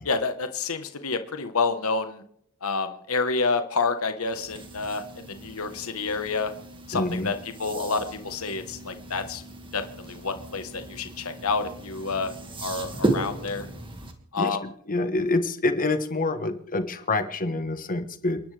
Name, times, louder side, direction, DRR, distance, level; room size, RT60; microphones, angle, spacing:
voice 1, 0.0-2.2 2.6-6.5 6.9-9.4 9.7-12.3 12.6-13.7 14.3-14.6, left 4 dB, 70° left, 8 dB, 1.2 m, -28 dB
sound 1, 4.3-14.1, right 2 dB, 25° right, 2.0 m, -35 dB
voice 2, 6.9-7.3 14.4-14.6 14.9-18.4, left 2 dB, 40° left, 9 dB, 1.3 m, -26 dB
29.5 x 11.0 x 3.4 m, 0.67 s
head